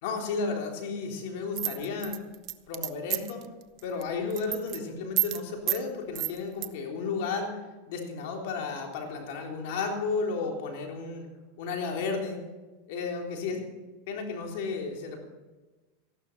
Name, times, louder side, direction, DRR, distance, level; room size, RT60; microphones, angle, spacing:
voice 1, 0.0-2.2 2.7-3.5 3.8-7.6 7.9-11.3 11.6-12.4 12.9-13.6 14.1-15.2, left 4 dB, 65° left, 1 dB, 3.6 m, -33 dB
sound 1, 1.6-3.4 3.8-4.0 4.3-4.8 5.2-5.4 5.7-5.8 6.1-6.7, right 16 dB, 45° right, 0.8 m, -29 dB
15.0 x 12.0 x 5.9 m, 1.2 s
hypercardioid pair, 120°, 0 cm